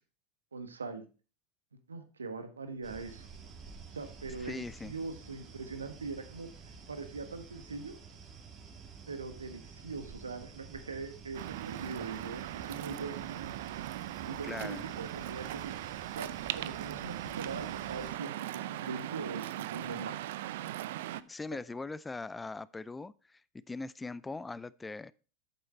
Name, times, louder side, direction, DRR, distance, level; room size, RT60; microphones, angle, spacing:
voice 1, 0.5-1.0 1.9-3.3 3.9-6.5 6.9-7.9 9.1-13.5 14.2-15.8 16.1-16.3 16.5-20.2, right 4 dB, 85° right, 8 dB, 1.3 m, -42 dB
sound 1, 2.8-18.1, right 5 dB, 35° right, 2.5 m, -51 dB
voice 2, 4.4-4.9 14.4-14.9 20.9-23.4 23.7-25.1, left 3 dB, 15° left, 20 dB, 0.4 m, -41 dB
Waves surf, 11.3-21.2, right 14 dB, 65° right, 0.5 m, -39 dB
8.6 x 7.1 x 4.3 m, 0.36 s
hypercardioid pair, 90°, 0 cm